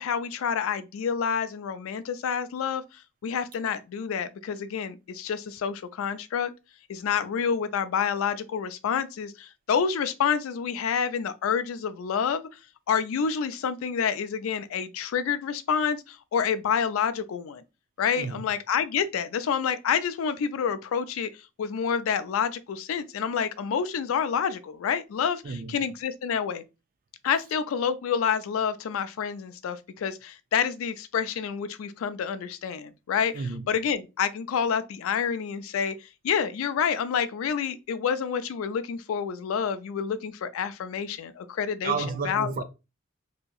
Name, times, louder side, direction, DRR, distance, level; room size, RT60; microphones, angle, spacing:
voice 1, 0.0-2.8 3.2-6.5 6.9-12.5 12.9-17.6 18.0-21.3 21.6-26.6 27.2-42.0 42.2-42.5, left 7 dB, 75° left, 0.3 m, -28 dB
voice 2, 18.2-18.5 25.4-25.8 33.3-33.6 41.8-42.6, right 5 dB, 45° right, 0.4 m, -31 dB
2.8 x 2.6 x 2.3 m
head